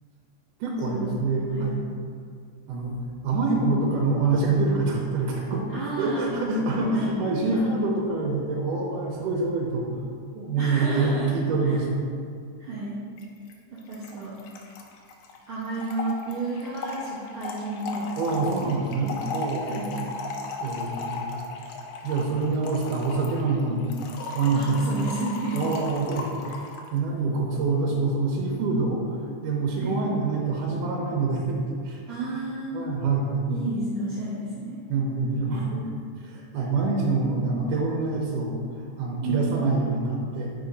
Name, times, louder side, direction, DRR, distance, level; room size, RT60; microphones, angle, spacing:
voice 1, 0.6-1.8 2.7-2.9 3.2-5.7 6.0-9.8 10.4-12.0 18.2-20.0 20.6-21.3 22.0-23.9 24.3-25.0 25.5-26.3 26.9-29.0 29.4-31.6 31.8-32.0 32.7-33.5 34.9-35.9 36.2-38.5 39.0-40.5, right 3 dB, 80° right, -2 dB, 2.2 m, -26 dB
voice 2, 3.2-3.6 5.7-6.3 6.7-7.8 10.6-11.3 11.6-11.8 12.6-13.0 13.7-14.4 15.5-18.7 19.7-20.0 24.5-25.7 26.5-26.6 29.7-30.0 32.1-32.9 33.5-34.8 39.2-39.6, right 2 dB, 65° right, -10 dB, 1.3 m, -32 dB
Trickle dribble / Fill (with liquid), 13.2-13.3 13.5-13.6 13.8-26.9, left 3 dB, 80° left, 1.7 m, -36 dB
5.3 x 4.8 x 4.0 m, 2.2 s
omnidirectional pair, 3.8 m